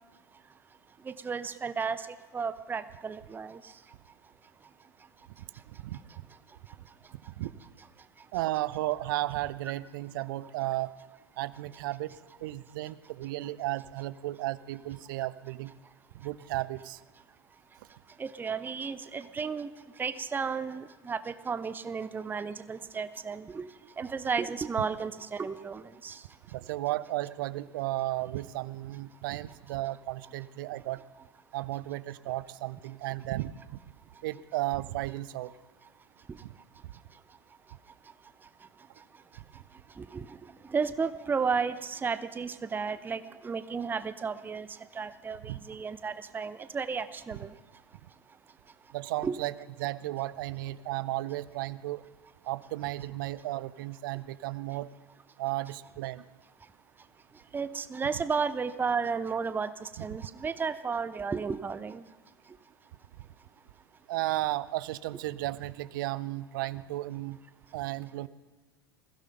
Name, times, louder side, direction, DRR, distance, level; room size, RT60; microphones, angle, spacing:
voice 1, 1.0-2.1 2.3-3.7 18.2-19.7 20.0-23.7 24.0-26.2 36.3-36.4 40.0-40.4 40.6-47.5 49.2-49.4 57.5-62.0, right 5 dB, 15° right, 14 dB, 0.6 m, -33 dB
voice 2, 5.7-6.0 7.3-7.5 8.3-10.9 11.4-12.1 12.4-15.7 16.1-17.0 26.5-31.0 31.5-33.5 34.2-35.5 36.4-36.5 45.5-45.6 48.9-49.5 49.8-52.0 52.4-54.9 55.4-56.2 64.1-67.4 67.7-68.3, right 16 dB, 60° right, 18 dB, 0.6 m, -34 dB
21.5 x 15.5 x 3.9 m, 1.3 s
figure-of-eight pair, 80°, 12 cm